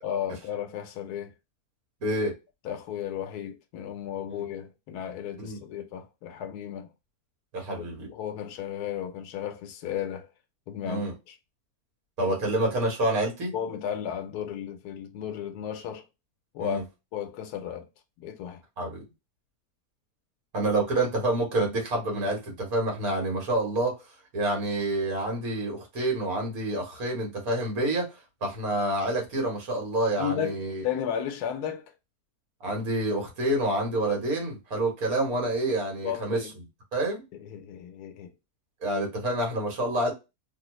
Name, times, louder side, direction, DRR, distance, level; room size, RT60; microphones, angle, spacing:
voice 1, 0.0-1.3 2.6-6.9 7.7-10.3 10.7-11.4 12.4-12.5 13.5-16.1 16.5-16.8 17.1-17.9 18.2-18.6 30.2-31.9 36.0-36.5 37.3-38.3, left 9 dB, 85° left, 1.1 m, -34 dB
voice 2, 2.0-2.3 5.4-5.6 7.5-8.1 10.8-11.1 12.2-13.5 16.6-16.8 18.8-19.0 20.5-23.9 24.3-28.1 28.4-30.8 32.6-36.4 36.9-37.2 38.8-40.1, right 1 dB, 70° right, 1.8 m, -28 dB
3.3 x 2.4 x 3.0 m
omnidirectional pair, 1.6 m